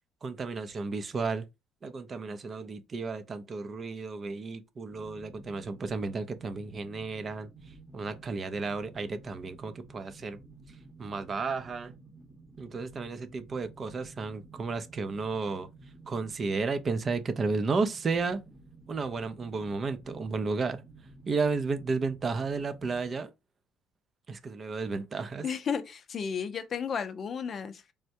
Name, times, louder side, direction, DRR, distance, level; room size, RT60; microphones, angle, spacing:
voice 1, 0.2-1.5 1.8-7.5 7.9-10.4 11.0-11.9 12.6-15.7 16.1-18.4 18.9-20.8 21.3-23.3 24.3-25.4, right 4 dB, 40° right, 0.4 m, -33 dB
sound 1, 4.9-23.1, right 3 dB, 20° right, 0.8 m, -53 dB
voice 2, 25.4-27.9, left 6 dB, 45° left, 0.4 m, -33 dB
3.3 x 2.1 x 2.7 m
supercardioid pair, 80°, 0 cm